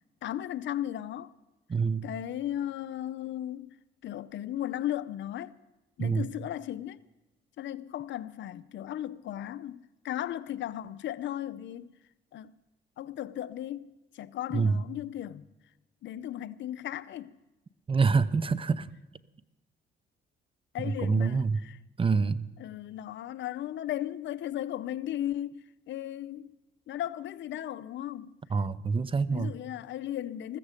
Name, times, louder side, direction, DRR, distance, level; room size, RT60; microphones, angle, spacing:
voice 1, 0.2-1.3 2.0-3.8 4.0-5.6 6.0-7.0 7.6-11.9 12.3-12.5 13.0-15.5 16.0-17.4 20.7-21.8 22.6-26.5 26.9-28.4 29.3-30.6, left 12 dB, 70° left, 0.6 m, -36 dB
voice 2, 1.7-2.0 6.0-6.3 14.5-14.8 17.9-18.9 20.8-21.6 22.0-22.5 28.5-29.5, right 4 dB, 25° right, 0.6 m, -26 dB
14.5 x 14.5 x 5.1 m
cardioid pair, 90°, 20 cm